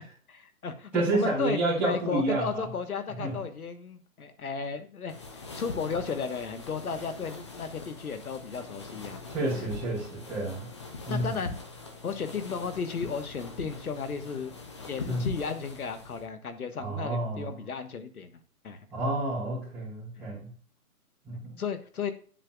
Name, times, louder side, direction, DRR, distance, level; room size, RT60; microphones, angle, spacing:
voice 1, 0.3-9.2 9.6-9.7 11.1-11.5 12.0-18.9 20.2-20.3 21.6-22.1, left 5 dB, 75° left, 9 dB, 1.5 m, -34 dB
voice 2, 0.9-2.7 3.2-3.4 9.3-10.7 11.1-11.3 15.1-15.3 16.8-17.6 18.9-20.5 21.2-21.6, right 2 dB, 5° right, -14 dB, 2.8 m, -30 dB
sound 1, 5.1-16.3, left 3 dB, 20° left, 0.6 m, -42 dB
9.3 x 7.5 x 2.4 m, 0.43 s
hypercardioid pair, 160°, 44 cm